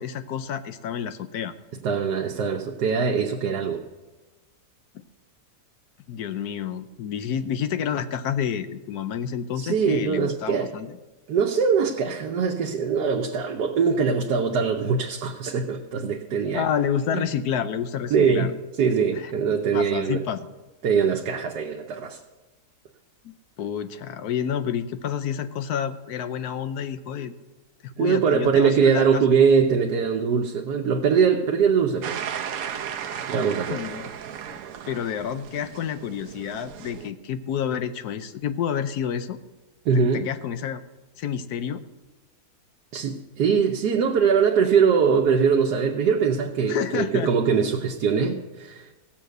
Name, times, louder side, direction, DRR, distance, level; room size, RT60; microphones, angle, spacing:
voice 1, 0.0-1.5 6.1-10.9 16.5-18.5 19.2-19.3 19.7-20.4 23.2-27.3 28.0-29.2 33.1-33.3 33.7-34.6 34.9-39.4 39.9-40.8 41.2-41.8 46.7-47.3, left 8 dB, 75° left, 11 dB, 1.2 m, -29 dB
voice 2, 1.8-3.8 9.6-10.7 11.3-16.6 17.1-17.2 18.1-20.2 20.8-22.2 28.0-32.2 33.3-33.8 39.8-40.3 42.9-48.9, right 6 dB, 90° right, 1 dB, 1.4 m, -22 dB
sound 1, 32.0-37.1, right 9 dB, 70° right, 1.1 m, -35 dB
16.0 x 7.3 x 6.6 m, 1.1 s
omnidirectional pair, 1.7 m